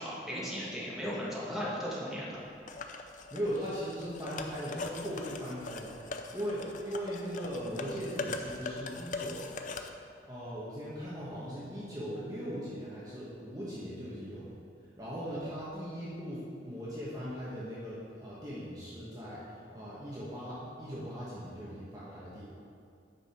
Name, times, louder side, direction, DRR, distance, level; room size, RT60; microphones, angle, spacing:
voice 1, 0.0-2.4, equal, ahead, -7 dB, 1.7 m, -36 dB
sound 1, 2.7-9.9, left 3 dB, 45° left, 0.5 m, -41 dB
voice 2, 3.3-9.5 10.3-22.5, equal, 20° right, -8 dB, 1.3 m, -39 dB
9.1 x 5.9 x 4.4 m, 2.4 s
head